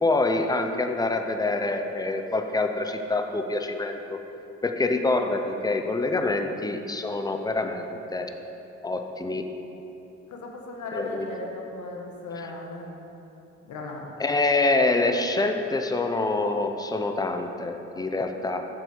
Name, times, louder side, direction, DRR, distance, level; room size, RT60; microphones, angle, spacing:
voice 1, 0.0-4.2 4.6-8.3 8.8-9.5 10.9-11.3 14.2-18.6, left 2 dB, 15° left, 5 dB, 0.6 m, -26 dB
voice 2, 10.3-12.9 13.6-14.1, left 2 dB, 75° left, 0 dB, 1.4 m, -36 dB
7.9 x 7.0 x 4.6 m, 2.9 s
cardioid pair, 90°, 30 cm